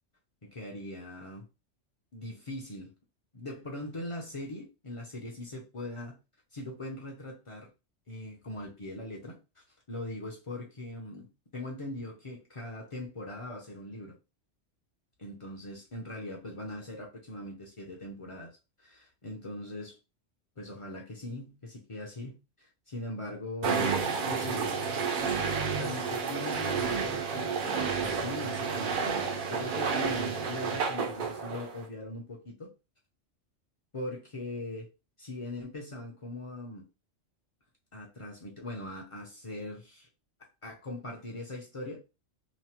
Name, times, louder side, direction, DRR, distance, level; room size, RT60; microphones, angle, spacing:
voice 1, 0.4-1.5 2.1-2.9 3.3-6.2 6.5-7.7 8.1-11.3 11.5-14.2 15.2-18.5 18.8-20.0 20.6-23.9 24.3-24.8 25.1-32.7 33.9-34.9 35.2-36.8 37.9-40.1 40.4-42.0, left 1 dB, 40° left, -1 dB, 0.5 m, -41 dB
sound 1, 23.6-31.8, right 5 dB, 55° right, 0.6 m, -31 dB
2.9 x 2.0 x 2.8 m, 0.27 s
omnidirectional pair, 1.3 m